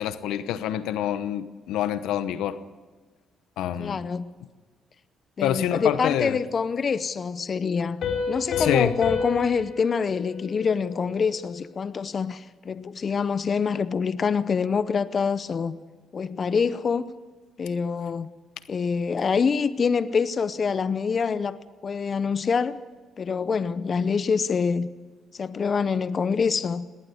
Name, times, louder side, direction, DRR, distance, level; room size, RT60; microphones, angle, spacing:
voice 1, 0.0-2.6 3.6-4.0 5.4-6.4 8.6-8.9, left 10 dB, 90° left, 0.9 m, -26 dB
voice 2, 3.8-4.3 5.4-15.7 16.1-17.0 17.6-18.3 18.7-22.8 23.2-24.9 25.3-26.9, left 5 dB, 45° left, 0.8 m, -26 dB
Piano, 8.0-11.4, left 5 dB, 70° left, 4.7 m, -31 dB
19.0 x 18.0 x 8.0 m
cardioid pair, 90°, 0 cm